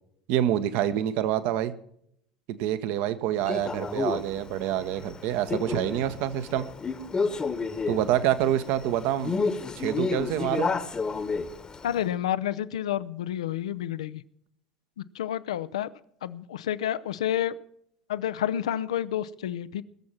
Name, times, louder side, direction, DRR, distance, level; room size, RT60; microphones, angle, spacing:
voice 1, 0.3-1.7 2.5-6.7 7.9-9.4 9.8-10.7, right 11 dB, 55° right, 12 dB, 1.0 m, -27 dB
Male speech man speaking, 3.5-12.0, left 4 dB, 25° left, 1.1 m, -31 dB
voice 2, 11.8-14.2 15.1-15.9 16.2-17.5 18.1-19.8, left 11 dB, 70° left, 16 dB, 0.5 m, -29 dB
20.5 x 7.3 x 6.0 m, 0.69 s
figure-of-eight pair, 70°, 3 cm